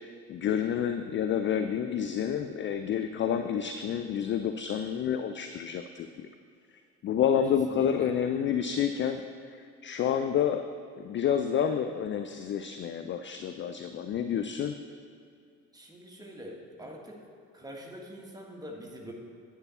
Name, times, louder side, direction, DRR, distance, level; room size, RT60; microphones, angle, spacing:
voice 1, 0.3-6.3 7.0-9.2 9.5-10.6 11.0-14.8, left 8 dB, 30° left, 8 dB, 0.4 m, -29 dB
voice 2, 7.7-8.1 15.7-17.2 17.5-19.1, equal, 10° right, -1 dB, 1.7 m, -44 dB
9.7 x 8.2 x 4.2 m, 2.4 s
figure-of-eight pair, 50°, 42 cm